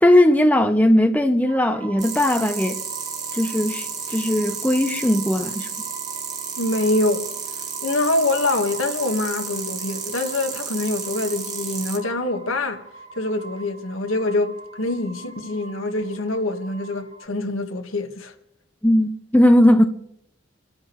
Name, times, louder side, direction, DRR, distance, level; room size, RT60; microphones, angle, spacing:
voice 1, 0.0-2.8 3.3-5.7 18.8-19.8, left 1 dB, 5° left, 0.7 m, -18 dB
sound 1, 1.5-17.3, right 5 dB, 50° right, 4.2 m, -41 dB
sound 2, 2.0-12.0, right 6 dB, 35° right, 2.5 m, -32 dB
voice 2, 6.6-7.3 7.8-12.8 13.1-18.3, left 2 dB, 80° left, 1.4 m, -25 dB
29.5 x 12.5 x 3.1 m
head